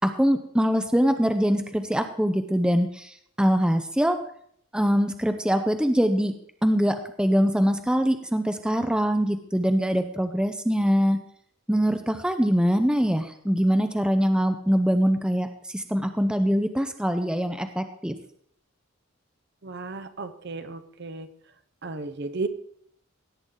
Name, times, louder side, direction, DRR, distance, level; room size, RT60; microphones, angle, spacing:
voice 1, 0.0-4.2 4.7-6.4 6.6-11.2 11.7-18.2, equal, 5° right, 7 dB, 0.6 m, -23 dB
voice 2, 19.6-21.3 21.8-22.5, right 3 dB, 50° right, 10 dB, 0.7 m, -34 dB
17.0 x 8.8 x 3.8 m, 0.65 s
head